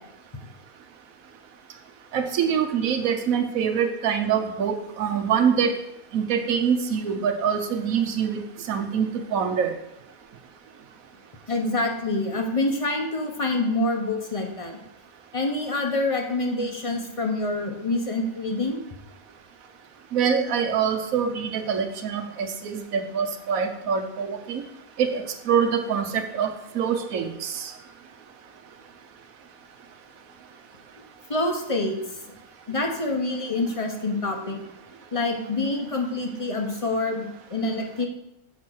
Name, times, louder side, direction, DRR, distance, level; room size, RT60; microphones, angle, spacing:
voice 1, 2.1-5.7 6.1-8.4 8.7-9.8 20.1-24.6 25.0-27.7, right 7 dB, 90° right, 7 dB, 1.3 m, -25 dB
voice 2, 11.5-14.8 15.3-18.8 31.3-32.2 32.7-34.6 35.1-38.1, left 2 dB, 30° left, 2 dB, 0.8 m, -26 dB
6.5 x 4.3 x 6.3 m, 0.89 s
omnidirectional pair, 1.4 m